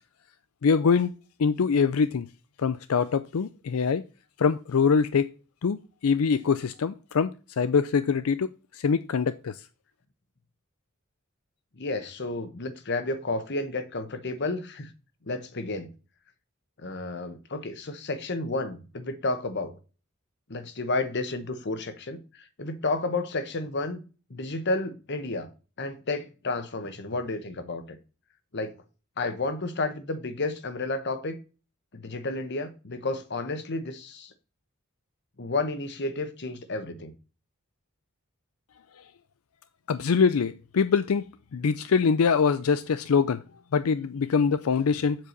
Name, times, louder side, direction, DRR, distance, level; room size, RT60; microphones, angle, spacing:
voice 1, 0.6-1.1 1.4-2.3 2.6-4.0 4.4-5.3 5.6-5.8 6.0-9.6 39.9-41.2 41.5-43.4 43.7-45.2, left 5 dB, 80° left, 0.5 m, -24 dB
voice 2, 11.8-14.9 15.2-15.9 16.8-19.7 20.5-24.0 24.3-25.5 25.8-28.0 28.5-28.7 29.2-31.4 31.9-34.3 35.4-37.1, left 2 dB, 55° left, 1.1 m, -31 dB
7.5 x 4.8 x 6.6 m
head